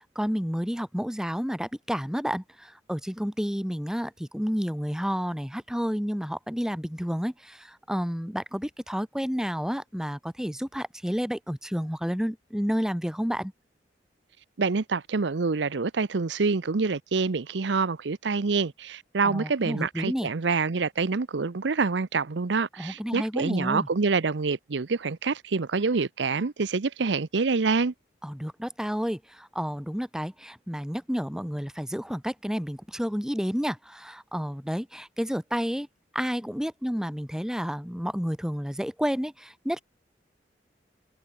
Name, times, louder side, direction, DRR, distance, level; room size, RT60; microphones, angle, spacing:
voice 1, 0.1-13.5 19.2-20.3 22.8-23.9 28.2-35.9 36.1-39.8, equal, 5° right, 1.7 m, -30 dB
voice 2, 14.6-27.9, right 4 dB, 75° right, 0.7 m, -26 dB
open air
head